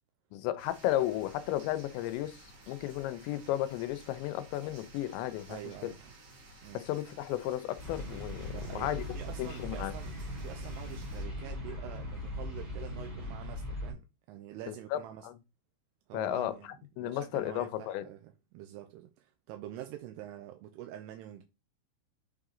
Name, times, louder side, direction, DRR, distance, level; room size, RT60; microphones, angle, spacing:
voice 1, 0.3-5.9 6.7-9.0 9.4-9.9 14.7-15.3 16.1-16.6 17.0-18.1, left 13 dB, 85° left, 2.9 m, -34 dB
sound 1, 0.6-11.3, right 2 dB, 45° right, 2.7 m, -55 dB
voice 2, 5.5-6.1 6.6-6.8 8.5-15.3 16.1-21.4, right 12 dB, 80° right, 2.5 m, -46 dB
sound 2, 7.8-13.9, left 1 dB, 15° right, 1.8 m, -39 dB
7.1 x 4.0 x 3.7 m
omnidirectional pair, 5.2 m